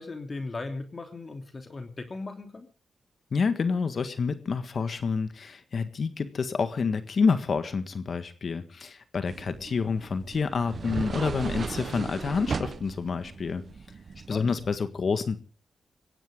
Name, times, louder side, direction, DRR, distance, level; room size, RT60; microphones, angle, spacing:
voice 1, 0.0-2.7 14.3-14.5, left 3 dB, 45° left, 5 dB, 3.0 m, -37 dB
voice 2, 3.3-13.6 14.3-15.4, left 5 dB, 60° left, 10 dB, 1.6 m, -28 dB
sound 1, 9.3-14.8, right 5 dB, 60° right, 0.9 m, -37 dB
22.5 x 16.0 x 3.8 m, 0.39 s
supercardioid pair, 50°, 0 cm